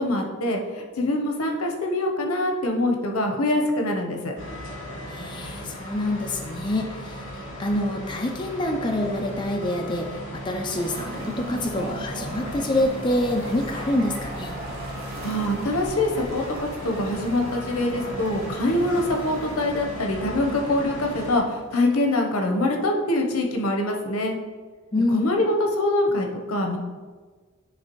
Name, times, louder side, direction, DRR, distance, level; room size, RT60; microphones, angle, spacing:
voice 1, 0.0-4.3 15.2-24.4 25.1-26.8, left 1 dB, 85° left, 2 dB, 0.8 m, -24 dB
sound 1, 4.4-21.4, equal, 60° left, 1.8 m, -36 dB
voice 2, 5.1-14.6 24.9-25.3, left 1 dB, 20° left, 2 dB, 0.4 m, -26 dB
sound 2, 10.7-21.9, right 2 dB, 45° right, 0.7 m, -39 dB
9.7 x 3.2 x 3.0 m, 1.4 s
head